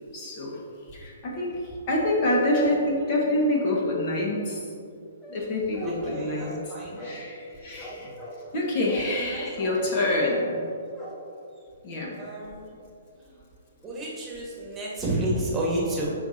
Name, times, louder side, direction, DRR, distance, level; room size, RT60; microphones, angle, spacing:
voice 1, 0.1-0.6 0.9-4.6 5.3-6.6 7.0-8.1 8.5-10.6 11.8-12.2, left 1 dB, 40° left, -3 dB, 1.8 m, -26 dB
sound 1, 5.2-7.5 7.8-8.6 8.9-9.3 9.6-10.0 10.2-10.6 11.0-11.3 11.6-11.7 11.9-12.0, equal, 10° left, 1.2 m, -41 dB
voice 2, 5.8-7.1 9.1-10.3 12.2-12.7 13.8-16.1, right 1 dB, 15° right, -4 dB, 1.8 m, -31 dB
13.5 x 4.9 x 2.9 m, 2.5 s
hypercardioid pair, 135°, 0 cm